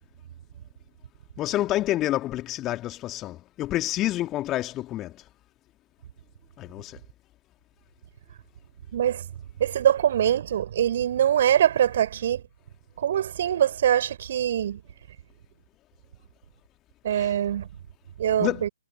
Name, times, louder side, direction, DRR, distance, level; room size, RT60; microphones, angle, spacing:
voice 1, 1.4-5.1 6.6-7.0 17.1-17.3 18.4-18.7, left 15 dB, 15° left, 2.0 m, -28 dB
voice 2, 8.9-9.2 9.6-12.4 13.0-14.8 17.0-17.7 18.2-18.7, right 10 dB, 40° right, 4.5 m, -23 dB
figure-of-eight pair, 135°, 0 cm